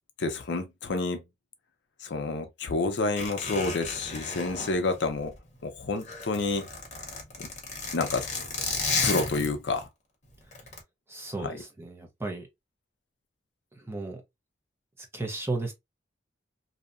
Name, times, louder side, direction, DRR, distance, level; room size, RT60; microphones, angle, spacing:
voice 1, 0.2-1.2 2.0-5.3 5.6-6.6 7.4-7.5 7.9-8.3 9.0-9.9 11.4-11.5, left 3 dB, 70° left, 0.5 m, -29 dB
Zipper (clothing), 3.1-5.6 5.9-9.8 10.5-10.8, left 4 dB, 40° left, 0.8 m, -33 dB
voice 2, 11.1-12.5 13.7-14.2 15.0-15.7, right 2 dB, 15° right, 0.5 m, -34 dB
2.7 x 2.1 x 2.4 m
head